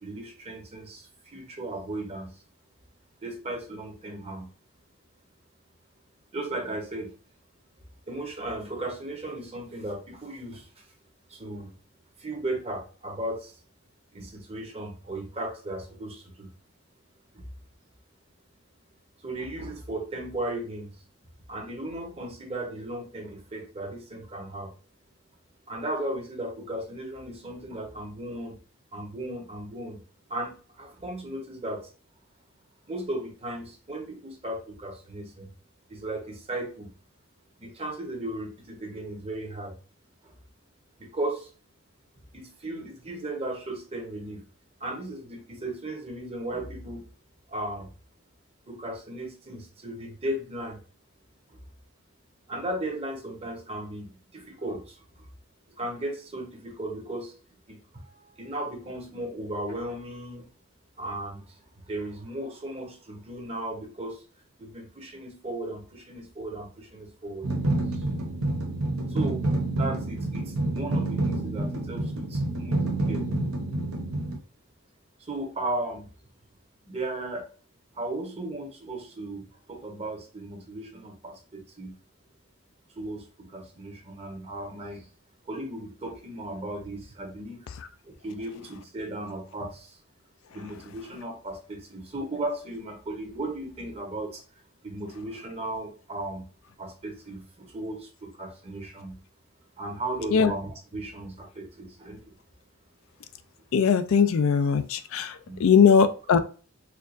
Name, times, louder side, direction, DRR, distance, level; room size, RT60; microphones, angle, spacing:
voice 1, 0.0-2.4 3.2-4.5 6.3-7.1 8.1-10.8 11.3-11.7 12.2-13.6 14.1-16.5 17.3-17.4 19.2-21.0 21.5-24.7 25.7-28.6 28.9-30.0 30.3-31.9 32.9-35.5 35.9-36.9 37.6-39.8 40.2-40.3 41.0-41.5 42.3-44.4 44.8-47.0 47.5-47.9 48.7-50.8 51.5-51.6 52.5-55.3 55.8-57.3 57.7-58.1 58.4-60.5 61.0-64.2 64.6-67.5 68.0-68.1 69.1-73.3 75.2-76.1 76.9-77.5 77.9-82.0 82.9-85.1 85.5-87.7 88.0-90.0 90.5-96.5 96.8-99.2 99.8-102.3 105.5-105.7, right 1 dB, 30° right, 0.9 m, -36 dB
sound 1, 67.4-74.4, right 2 dB, 90° right, 0.8 m, -28 dB
voice 2, 103.7-105.3 105.6-106.4, left 6 dB, 70° left, 0.4 m, -20 dB
4.4 x 2.4 x 2.5 m
head